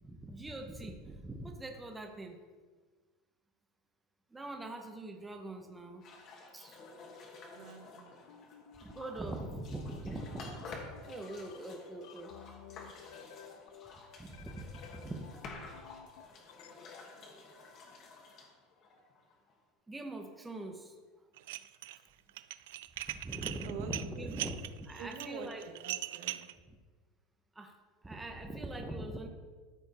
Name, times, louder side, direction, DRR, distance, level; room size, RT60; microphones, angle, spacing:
voice 1, 0.0-2.4 4.3-6.0 6.5-6.8 8.8-12.3 14.2-15.3 19.9-20.9 23.1-25.7 26.7-26.8 27.5-27.8 28.0-29.3, right 2 dB, 10° right, 4 dB, 0.7 m, -42 dB
sound 1, 6.0-19.5, left 3 dB, 35° left, 1.5 m, -51 dB
voice 2, 7.5-8.3 8.8-9.0 9.3-9.4 23.6-24.4 25.0-26.5, right 5 dB, 70° right, 4 dB, 1.4 m, -47 dB
sound 2, 8.3-16.7, left 9 dB, 85° left, 0.6 m, -54 dB
Dishes pots and pans, 21.4-22.0 22.3-26.5, right 15 dB, 90° right, 0.3 m, -40 dB
13.5 x 4.8 x 4.1 m, 1.4 s
supercardioid pair, 165°, 0 cm